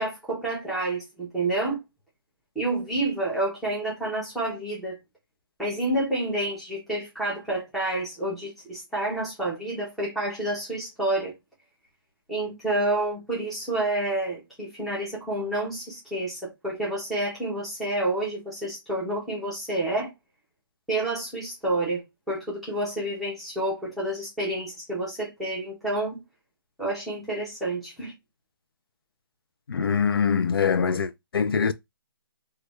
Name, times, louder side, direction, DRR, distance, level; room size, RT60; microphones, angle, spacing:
voice 1, 0.0-1.8 2.5-5.0 5.6-11.3 12.3-20.1 20.9-22.0 22.3-26.2 26.8-28.1, right 1 dB, ahead, 0.6 m, -29 dB
voice 2, 29.7-31.7, left 6 dB, 75° left, 0.4 m, -23 dB
3.2 x 2.3 x 3.0 m
hypercardioid pair, 175°, 12 cm